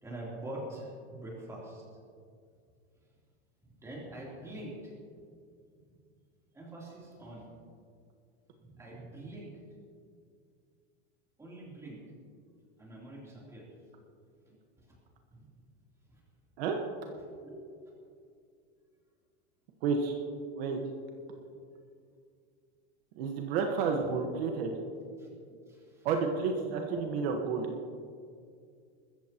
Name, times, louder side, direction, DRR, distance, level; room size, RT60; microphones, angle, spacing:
voice 1, 0.0-1.8 3.8-4.7 6.5-7.4 8.6-9.5 11.4-12.0 12.8-13.7 15.3-15.4 17.4-17.6 21.4-21.5 24.4-24.5 25.2-25.3 25.7-26.1 26.9-27.0 27.3-27.4, right 1 dB, 10° right, -5 dB, 3.3 m, -44 dB
voice 2, 19.8-20.2 20.6-20.8 23.1-24.7 26.0-27.7, right 5 dB, 60° right, 2 dB, 1.5 m, -30 dB
21.0 x 15.0 x 3.0 m, 2.2 s
supercardioid pair, 175°, 34 cm